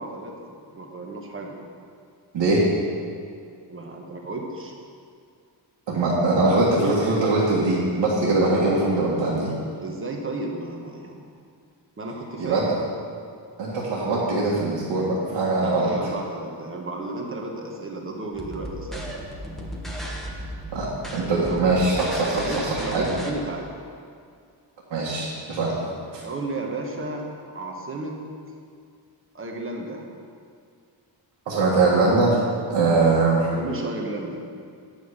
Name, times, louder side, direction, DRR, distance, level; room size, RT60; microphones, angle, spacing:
voice 1, 0.0-1.5 3.7-4.7 9.8-11.2 12.0-12.7 15.6-19.1 21.4-21.6 22.3-23.7 25.9-26.0 26.2-27.3 27.5-28.2 29.3-30.0 33.5-34.4, right 2 dB, 30° right, 1 dB, 1.1 m, -33 dB
voice 2, 5.9-9.5 12.4-12.7 13.6-15.9 20.7-23.1 24.9-25.8 26.1-26.2 31.5-32.4 32.7-33.5, right 2 dB, 80° right, -7 dB, 1.8 m, -22 dB
sound 1, 18.3-23.3, equal, ahead, 0.9 m, -35 dB
9.3 x 5.5 x 6.5 m, 2.2 s
wide cardioid pair, 170°, 45 cm